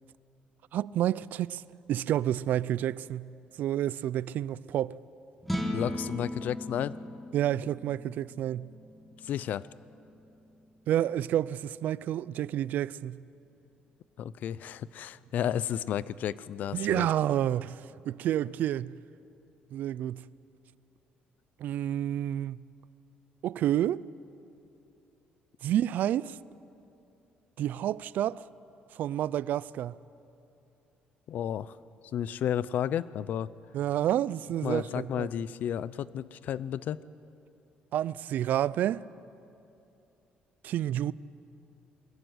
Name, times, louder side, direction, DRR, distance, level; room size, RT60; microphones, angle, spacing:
voice 1, 0.7-1.6 1.9-3.3 3.6-5.0 7.3-8.7 10.9-13.2 16.7-19.0 19.7-20.2 21.6-22.6 23.4-24.0 25.6-26.4 27.6-28.4 28.9-30.0 33.7-35.3 37.9-39.0 40.6-41.1, right 12 dB, 60° right, 0.4 m, -29 dB
sound 1, 5.4-11.8, left 1 dB, ahead, 1.7 m, -39 dB
voice 2, 5.7-6.9 9.2-9.7 14.2-17.1 31.3-31.8 32.1-33.5 34.6-37.0, left 10 dB, 55° left, 0.5 m, -32 dB
22.0 x 14.0 x 9.6 m
cardioid pair, 155°, 3 cm